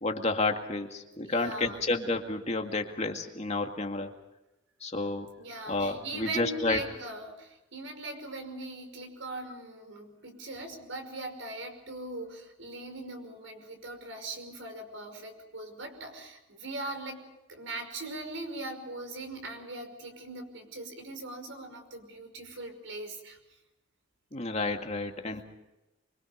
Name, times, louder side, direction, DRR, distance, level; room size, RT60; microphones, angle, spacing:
voice 1, 0.0-4.1 4.8-5.3 5.7-6.9 24.3-25.4, left 3 dB, 35° left, 3 dB, 2.1 m, -30 dB
voice 2, 1.2-1.9 5.4-17.2 17.5-23.4, right 2 dB, 75° right, 5 dB, 5.7 m, -40 dB
25.0 x 25.0 x 5.2 m, 0.97 s
head